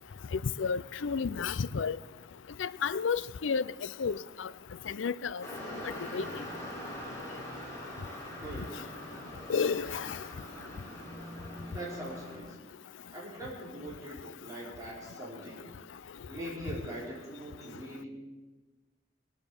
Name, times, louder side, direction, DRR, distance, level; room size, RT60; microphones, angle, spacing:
voice 1, 0.3-2.0 2.6-3.6 4.0-4.5 4.9-5.4 6.1-6.2 9.5-10.2, left 5 dB, 80° left, 0.5 m, -31 dB
sound 1, 5.4-12.4, left 1 dB, 15° left, 4.2 m, -42 dB
voice 2, 8.4-8.7 11.7-12.6 13.1-15.6 16.3-18.1, right 1 dB, 20° right, 5.0 m, -42 dB
18.5 x 10.0 x 7.1 m
head